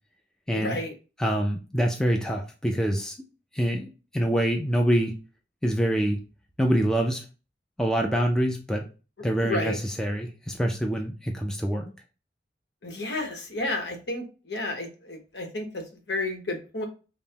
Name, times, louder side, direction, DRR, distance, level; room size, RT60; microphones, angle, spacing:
voice 1, 0.5-0.9 9.4-9.8 12.8-16.9, left 2 dB, 75° left, 4 dB, 0.9 m, -31 dB
voice 2, 1.2-3.1 3.5-5.1 5.6-6.2 6.6-7.2 7.8-8.9 9.2-11.9, equal, 5° left, 1 dB, 0.3 m, -25 dB
5.2 x 2.0 x 2.8 m, 0.34 s
head